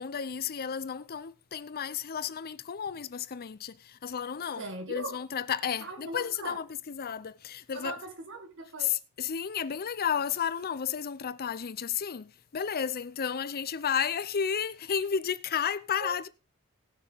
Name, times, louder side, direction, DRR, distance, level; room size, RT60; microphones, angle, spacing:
voice 1, 0.0-8.0 8.8-16.3, left 7 dB, 45° left, 0.6 m, -32 dB
voice 2, 4.6-5.2 5.8-6.6 7.7-9.0 16.0-16.1, right 2 dB, 60° right, 2.1 m, -40 dB
19.0 x 6.5 x 3.5 m
head